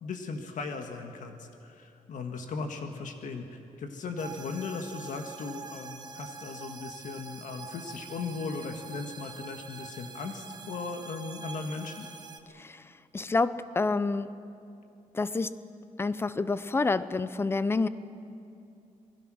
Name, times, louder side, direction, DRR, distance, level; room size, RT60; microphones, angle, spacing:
voice 1, 0.0-12.1, left 4 dB, 65° left, 5 dB, 1.7 m, -37 dB
sound 1, 4.2-12.4, right 5 dB, 30° right, 1.2 m, -45 dB
voice 2, 13.1-14.3 15.1-15.6 16.0-17.9, left 3 dB, 15° left, 15 dB, 0.5 m, -28 dB
27.0 x 20.5 x 6.3 m, 2.7 s
wide cardioid pair, 170°, 14 cm